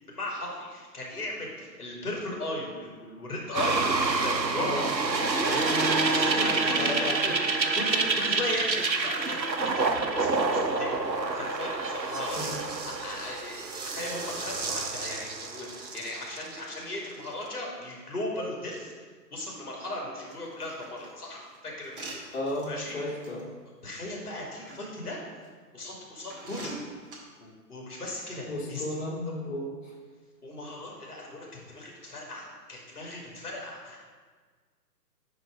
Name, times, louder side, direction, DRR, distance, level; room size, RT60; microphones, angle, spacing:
voice 1, 0.1-4.9 5.4-7.4 7.7-11.0 11.3-18.9 19.3-22.0 22.6-23.0 23.8-25.2 25.7-26.8 27.4-28.8 29.4-29.5 30.4-34.0, left 1 dB, 65° left, -2 dB, 2.2 m, -37 dB
sound 1, 3.5-16.9 17.3-17.4, right 3 dB, 90° right, 0.9 m, -28 dB
voice 2, 6.8-7.2 12.3-12.6 22.3-23.5 28.4-29.9, left 1 dB, 45° left, -6 dB, 2.0 m, -34 dB
sound 2, 20.3-22.7 23.2-23.4 24.2-24.8 25.4-25.5 26.3-27.1, right 2 dB, 30° right, 1.6 m, -44 dB
10.0 x 3.9 x 4.8 m, 1.5 s
figure-of-eight pair, 140°, 50 cm